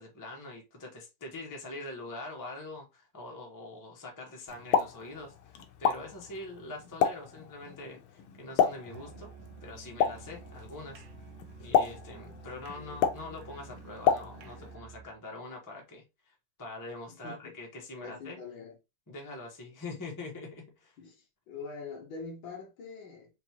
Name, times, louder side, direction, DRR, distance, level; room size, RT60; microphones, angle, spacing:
voice 1, 0.0-9.3 9.6-11.0 11.6-18.4 19.1-21.0, left 2 dB, 15° left, 0.7 m, -44 dB
Explosion, 4.5-14.7, left 7 dB, 85° left, 1.6 m, -32 dB
Musical instrument, 8.9-15.2, right 6 dB, 75° right, 1.4 m, -50 dB
voice 2, 17.2-17.5 18.0-18.7 21.0-21.2 21.5-23.3, left 4 dB, 70° left, 1.9 m, -43 dB
5.2 x 2.6 x 2.9 m
omnidirectional pair, 2.3 m